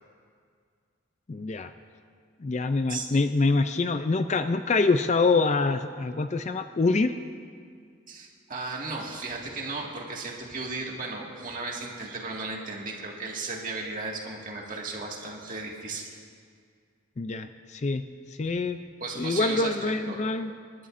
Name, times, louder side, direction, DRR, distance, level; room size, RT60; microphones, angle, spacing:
voice 1, 1.3-1.7 2.4-7.1 17.2-18.0 18.4-18.8 19.2-20.5, left 3 dB, 35° left, 9 dB, 0.4 m, -25 dB
voice 2, 8.1-16.1 19.0-20.2, right 3 dB, 40° right, -2 dB, 1.9 m, -35 dB
27.5 x 12.5 x 2.6 m, 2.1 s
head